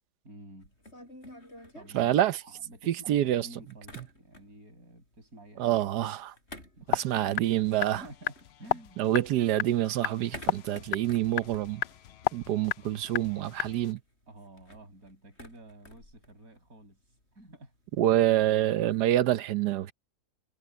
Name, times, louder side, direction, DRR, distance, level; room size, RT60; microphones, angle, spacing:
voice 1, 0.2-0.7 1.7-5.8 6.8-7.5 7.9-9.0 14.3-17.7, right 1 dB, 60° right, 7.8 m, -50 dB
sound 1, 0.6-2.8 3.1-4.7 5.0-9.2 9.5-12.8 13.1-13.2 13.4-19.2, left 1 dB, 40° left, 7.8 m, -51 dB
voice 2, 1.9-2.3 2.9-3.5 5.6-6.3 6.9-8.0 9.0-11.8 12.3-14.0 18.0-19.9, right 13 dB, 80° right, 1.3 m, -26 dB
sound 2, 6.9-13.9, left 11 dB, 85° left, 0.5 m, -34 dB
omnidirectional pair, 1.7 m